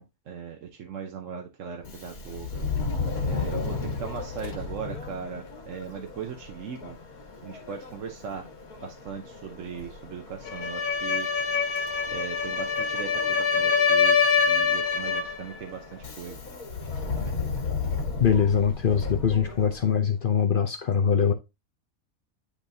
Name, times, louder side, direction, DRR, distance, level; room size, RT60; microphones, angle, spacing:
voice 1, 0.0-2.6 3.2-7.0 7.4-8.5 8.8-11.3 12.1-14.2 14.5-16.4 17.1-17.4, right 7 dB, 60° right, 1.1 m, -39 dB
Subway metro underground, 1.8-20.1, left 4 dB, 70° left, 1.9 m, -35 dB
sound 1, 10.5-15.4, left 5 dB, 85° left, 1.5 m, -24 dB
voice 2, 18.2-21.3, left 7 dB, 55° left, 0.6 m, -23 dB
9.9 x 3.5 x 2.6 m
omnidirectional pair, 1.6 m